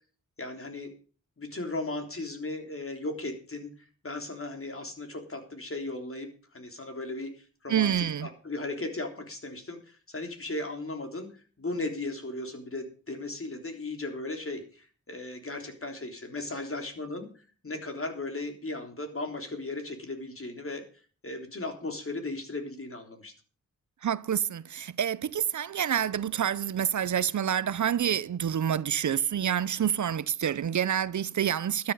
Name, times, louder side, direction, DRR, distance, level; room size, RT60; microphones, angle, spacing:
voice 1, 0.4-0.9 1.4-3.7 4.0-6.3 6.5-11.3 11.6-20.8 21.2-23.3, left 2 dB, 45° left, 3.4 m, -36 dB
voice 2, 7.7-8.3 24.0-31.9, right 9 dB, 65° right, 0.6 m, -28 dB
12.5 x 10.5 x 5.5 m
cardioid pair, 60°, 31 cm